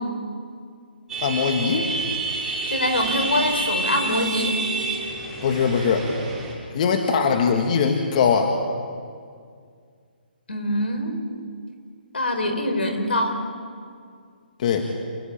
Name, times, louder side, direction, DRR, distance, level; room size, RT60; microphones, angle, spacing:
sound 1, 1.1-6.5, right 3 dB, 10° right, 7.1 m, -28 dB
voice 1, 1.2-1.9 5.4-6.1 6.7-8.5 14.6-14.9, left 6 dB, 45° left, 4 dB, 2.0 m, -21 dB
voice 2, 2.7-4.5 10.5-11.2 12.1-13.4, left 1 dB, 80° left, 5 dB, 5.1 m, -24 dB
28.0 x 16.5 x 8.9 m, 2.1 s
hypercardioid pair, 145°, 6 cm